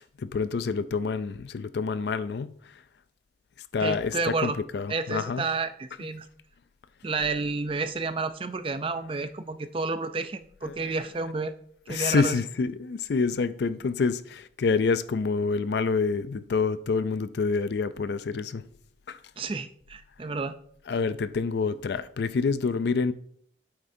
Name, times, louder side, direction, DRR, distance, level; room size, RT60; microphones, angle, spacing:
voice 1, 0.0-2.5 3.7-5.4 10.7-10.8 11.9-18.7 19.1-19.2 20.9-23.1, left 4 dB, 65° left, 0.4 m, -27 dB
voice 2, 3.8-4.6 4.9-6.3 7.0-11.5 11.9-12.4 19.4-20.6, right 3 dB, 30° right, 0.4 m, -30 dB
8.8 x 7.6 x 2.7 m
head